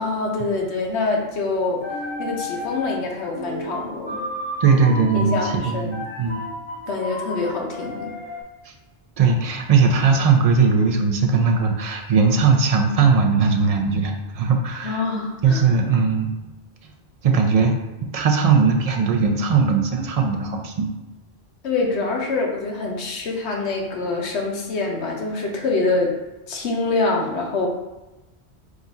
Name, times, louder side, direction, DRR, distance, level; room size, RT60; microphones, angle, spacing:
voice 1, 0.0-1.8 2.2-4.2 5.1-6.0 6.9-8.1 14.8-15.6 21.6-26.1 26.5-27.7, left 3 dB, 80° left, 0 dB, 1.0 m, -25 dB
sound 1, 1.7-3.1 3.3-8.4, left 1 dB, 30° left, 0.8 m, -32 dB
voice 2, 4.6-6.4 9.2-15.0 15.4-16.4 17.2-17.8 18.1-20.9, right 5 dB, 55° right, 3 dB, 0.4 m, -19 dB
3.7 x 2.4 x 4.0 m, 1.0 s
omnidirectional pair, 1.1 m